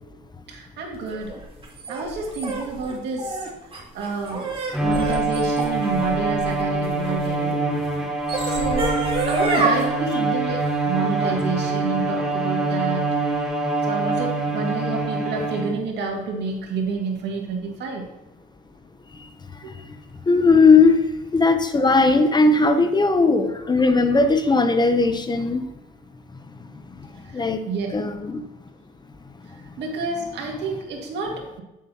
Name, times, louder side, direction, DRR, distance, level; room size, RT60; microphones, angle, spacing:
voice 1, 0.5-1.4 1.9-3.4 3.9-4.5 4.8-7.6 8.5-13.0 13.9-18.1 19.6-19.7 27.3-28.0 29.8-31.6, right 4 dB, 70° right, 1 dB, 2.1 m, -29 dB
sound 1, 1.1-7.3 8.0-9.8, right 2 dB, 30° right, 2.3 m, -28 dB
Bowed string instrument, 4.7-15.9, right 3 dB, 5° right, 1.6 m, -24 dB
voice 2, 8.3-8.8 20.3-21.0 21.3-25.7 27.3-27.6 27.9-28.4, left 3 dB, 25° left, 9 dB, 0.8 m, -18 dB
8.7 x 7.3 x 2.9 m, 0.98 s
supercardioid pair, 85°, 19 cm